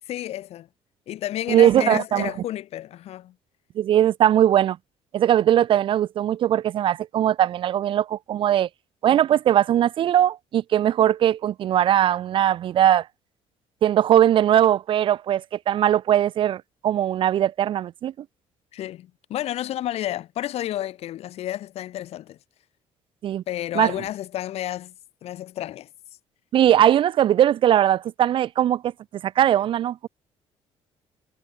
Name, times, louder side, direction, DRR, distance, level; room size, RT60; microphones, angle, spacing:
voice 1, 0.1-0.7 1.1-3.3 18.7-22.4 23.5-24.9 25.2-25.9, left 13 dB, 60° left, 3.2 m, -31 dB
voice 2, 1.5-2.3 3.8-4.8 5.1-8.7 9.0-13.1 13.8-18.1 23.2-23.4 23.8-23.9 26.5-28.9 29.2-30.1, right 11 dB, 45° right, 0.6 m, -20 dB
cardioid pair, 150°, 12 cm